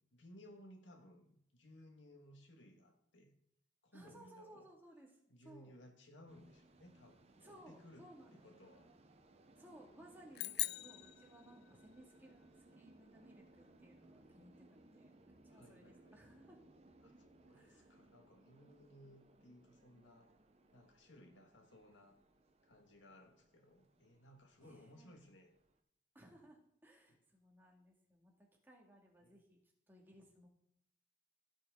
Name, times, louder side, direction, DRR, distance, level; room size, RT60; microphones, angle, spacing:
voice 1, 0.0-3.3 3.8-4.7 5.3-8.1 8.3-8.9 15.5-16.2 17.0-20.3 20.7-22.2 22.6-25.5 27.1-27.2 29.2-29.4, left 1 dB, 85° left, 4 dB, 1.9 m, -61 dB
voice 2, 3.9-5.1 5.4-5.8 7.4-8.7 9.6-16.6 17.5-18.0 24.6-25.2 26.1-29.6 29.9-30.5, right 1 dB, 10° right, -1 dB, 2.2 m, -61 dB
sound 1, 6.3-25.8, right 2 dB, 35° right, 0.9 m, -65 dB
sound 2, 10.3-12.0, left 17 dB, 60° left, 0.3 m, -42 dB
16.0 x 6.4 x 3.8 m, 0.73 s
head